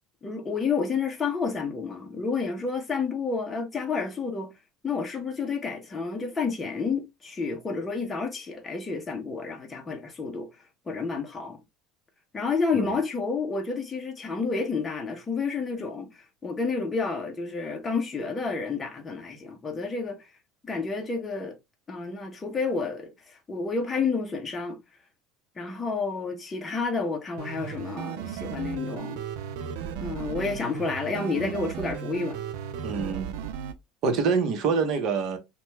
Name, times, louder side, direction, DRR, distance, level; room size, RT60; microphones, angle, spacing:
voice 1, 0.2-4.5 4.8-10.5 10.9-11.6 12.3-16.1 16.4-20.2 20.6-21.6 21.9-24.8 25.6-29.2 30.0-32.4, left 4 dB, 15° left, 0.6 m, -30 dB
Short Techno, 27.4-33.7, right 8 dB, 75° right, 0.4 m, -35 dB
voice 2, 32.8-33.3 34.0-35.4, right 5 dB, 50° right, 0.8 m, -25 dB
2.9 x 2.2 x 3.2 m
cardioid pair, 145°, 0 cm